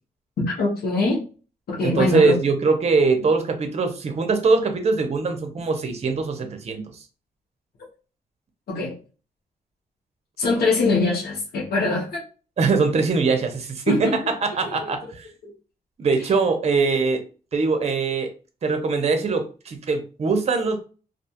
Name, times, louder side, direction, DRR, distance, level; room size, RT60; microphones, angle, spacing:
voice 1, 0.4-1.2 1.7-2.4 8.7-9.0 10.4-12.2 13.9-14.2 14.6-14.8 15.0-15.1 16.3-16.4, left 3 dB, 80° left, -3 dB, 0.8 m, -23 dB
voice 2, 1.8-6.8 12.6-14.1 14.4-15.3 16.0-17.2 17.5-18.3 18.6-20.8, right 4 dB, 45° right, 6 dB, 0.6 m, -22 dB
2.4 x 2.3 x 2.8 m, 0.36 s
cardioid pair, 100°, 16 cm